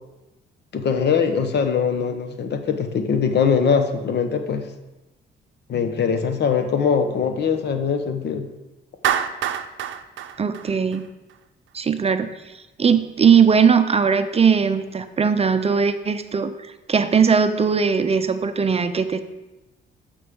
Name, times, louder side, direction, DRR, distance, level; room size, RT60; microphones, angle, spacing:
voice 1, 0.7-4.6 5.7-8.4, left 6 dB, 60° left, 7 dB, 1.0 m, -22 dB
Clapping, 9.0-11.3, right 10 dB, 75° right, 0.6 m, -26 dB
voice 2, 10.4-11.1 11.7-12.3 12.8-16.5 16.9-19.2, right 6 dB, 30° right, 9 dB, 0.6 m, -19 dB
14.0 x 5.3 x 3.7 m, 1.1 s
cardioid pair, 90°, 20 cm